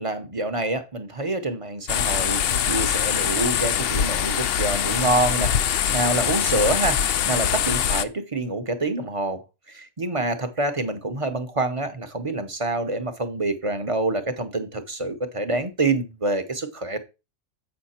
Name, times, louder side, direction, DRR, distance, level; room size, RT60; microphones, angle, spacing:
voice 1, 0.0-5.5 5.9-9.4 9.7-17.0, right 2 dB, 30° right, 0.8 m, -26 dB
sound 1, 1.9-8.0, left 9 dB, 65° left, 0.6 m, -23 dB
7.8 x 5.7 x 4.3 m
omnidirectional pair, 1.3 m